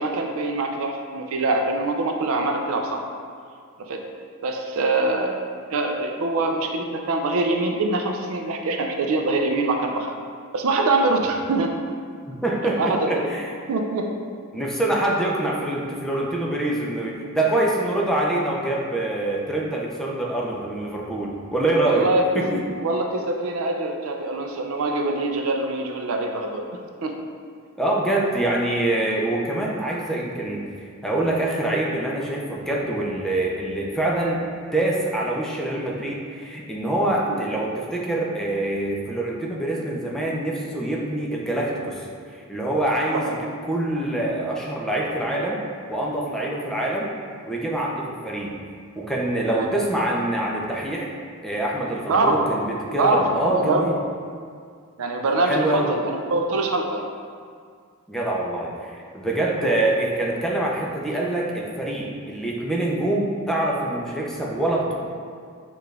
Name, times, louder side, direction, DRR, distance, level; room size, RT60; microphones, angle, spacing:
voice 1, 0.0-3.0 3.9-4.1 4.4-5.4 5.7-10.1 10.5-11.7 12.6-13.1 13.7-14.1 21.9-22.2 22.5-26.7 27.0-27.1 37.3-37.4 43.1-43.4 49.6-49.7 52.1-52.5 53.0-53.9 55.0-57.1, right 2 dB, 70° right, 3 dB, 0.4 m, -24 dB
voice 2, 12.4-13.5 14.5-22.1 22.3-22.6 27.8-30.7 31.0-34.4 34.7-42.1 42.3-43.2 43.6-45.6 45.9-47.1 47.5-48.6 49.0-51.1 51.4-54.0 55.5-55.9 58.1-64.9, right 1 dB, ahead, -3 dB, 0.5 m, -25 dB
6.6 x 2.4 x 3.3 m, 2.1 s
head